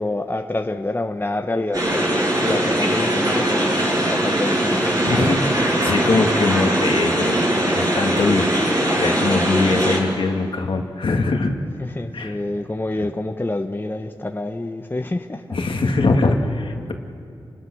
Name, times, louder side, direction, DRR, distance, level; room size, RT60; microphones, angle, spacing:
voice 1, 0.0-2.1 2.4-5.3 11.8-16.0, left 2 dB, 20° left, 6 dB, 1.1 m, -27 dB
sound 1, 1.7-10.0, right 1 dB, 40° right, 7.0 m, -20 dB
voice 2, 5.0-7.4 7.7-8.5 9.0-11.5 12.1-12.3 15.5-16.9, left 3 dB, 70° left, 3 dB, 2.2 m, -22 dB
29.5 x 21.0 x 6.4 m, 2.4 s
cardioid pair, 55°, 9 cm